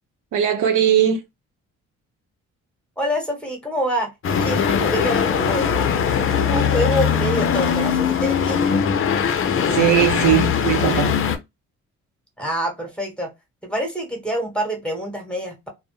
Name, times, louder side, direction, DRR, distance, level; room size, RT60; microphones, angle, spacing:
voice 1, 0.3-1.2 9.6-11.2, right 9 dB, 80° right, 0.7 m, -19 dB
voice 2, 3.0-4.1 4.4-5.7 6.2-8.8 12.4-13.3 13.6-15.7, equal, 5° left, 1.0 m, -26 dB
sound 1, 4.2-11.4, left 7 dB, 45° left, 0.5 m, -20 dB
2.1 x 2.1 x 3.0 m
cardioid pair, 90°, 30 cm